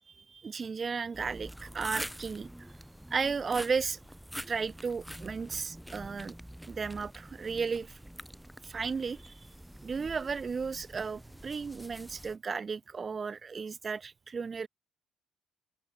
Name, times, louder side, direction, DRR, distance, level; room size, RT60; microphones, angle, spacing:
voice 1, 0.3-2.5 3.1-4.0 4.5-6.3 6.7-8.0 8.6-9.5 9.8-14.7, right 5 dB, 40° right, 0.5 m, -34 dB
sound 1, 1.1-12.4, equal, 5° right, 0.8 m, -46 dB
open air
supercardioid pair, 60°, 0 cm